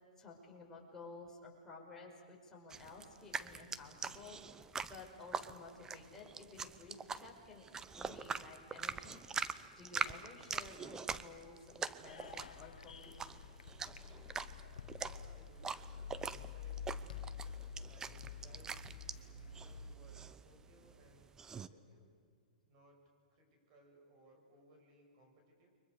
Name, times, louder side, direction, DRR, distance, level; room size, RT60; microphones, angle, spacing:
voice 1, 0.2-7.6 7.9-13.3, left 3 dB, 10° left, -3 dB, 5.4 m, -54 dB
sound 1, 2.7-21.7, right 5 dB, 15° right, 0.6 m, -44 dB
sound 2, 12.1-20.0, left 6 dB, 85° left, 1.2 m, -49 dB
voice 2, 14.9-17.3 17.8-18.8 19.3-22.1 22.7-23.0 23.3-25.7, right 1 dB, 45° right, 2 dB, 7.3 m, -64 dB
29.5 x 23.5 x 6.9 m, 2.1 s
hypercardioid pair, 140°, 4 cm